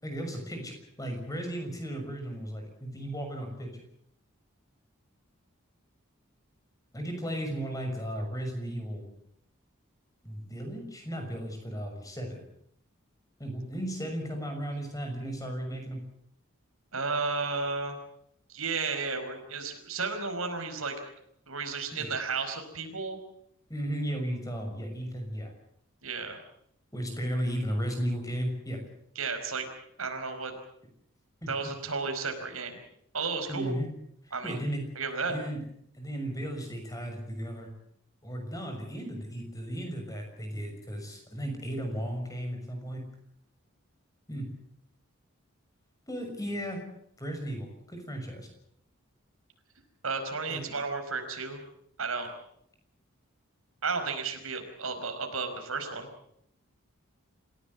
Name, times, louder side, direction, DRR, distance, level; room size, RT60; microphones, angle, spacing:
voice 1, 0.0-3.8 6.9-9.1 10.2-12.4 13.4-16.0 21.9-22.1 23.7-25.5 26.9-28.8 31.4-31.5 33.5-33.9 34.2-34.8 35.3-35.6 35.9-37.7 38.2-43.0 44.3-44.5 46.1-46.8 47.2-48.5 50.5-50.7, equal, 15° left, 4 dB, 6.3 m, -35 dB
voice 2, 16.9-18.0 18.5-20.9 21.5-23.2 26.0-26.4 29.1-29.7 30.0-30.5 31.5-32.8 33.1-33.7 34.3-34.6 34.9-35.4 50.0-51.6 52.0-52.3 53.8-56.1, right 4 dB, 80° right, 6 dB, 5.0 m, -33 dB
27.5 x 16.5 x 8.2 m, 0.71 s
head